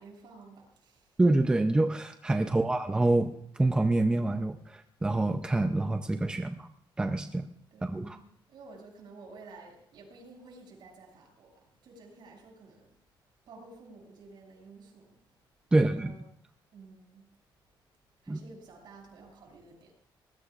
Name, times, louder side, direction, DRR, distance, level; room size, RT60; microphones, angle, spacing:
voice 1, 0.0-1.2 7.7-12.9 13.5-15.2 15.8-16.2 16.7-17.3 18.2-19.9, right 3 dB, 65° right, 0 dB, 7.0 m, -52 dB
voice 2, 1.2-6.7 7.0-7.4 7.8-8.2 15.7-16.1 18.3-18.4, right 2 dB, 10° right, 6 dB, 0.5 m, -26 dB
23.5 x 20.0 x 2.5 m, 0.65 s
cardioid pair, 160°, 9 cm